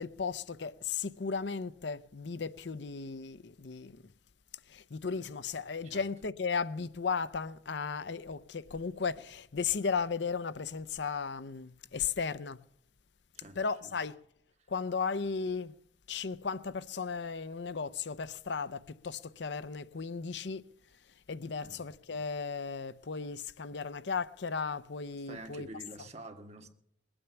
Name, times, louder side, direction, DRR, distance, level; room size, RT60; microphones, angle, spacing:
voice 1, 0.0-4.0 4.7-12.6 13.6-14.2 14.7-15.7 16.1-20.6 21.3-25.7, left 5 dB, 65° left, 0.6 m, -35 dB
voice 2, 13.4-13.9 14.6-14.7 21.6-21.9 25.3-26.7, right 2 dB, 35° right, 1.8 m, -48 dB
21.0 x 8.9 x 6.9 m
head